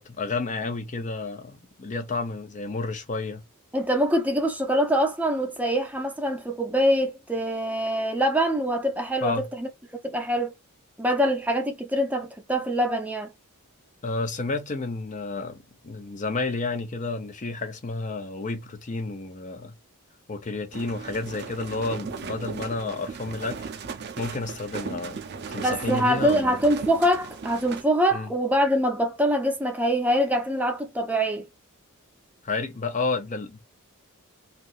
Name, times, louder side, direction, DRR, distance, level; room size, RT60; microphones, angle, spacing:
voice 1, 0.0-3.4 9.2-9.5 14.0-15.6 15.8-19.7 20.3-23.7 24.2-25.2 25.5-26.6 28.1-28.3 32.4-33.6, left 3 dB, 35° left, 0.6 m, -31 dB
voice 2, 3.7-9.7 10.0-10.5 11.0-13.3 25.6-31.4, equal, 5° right, 0.6 m, -24 dB
sound 1, 20.7-27.8, right 5 dB, 50° right, 0.5 m, -37 dB
3.3 x 2.7 x 2.5 m
head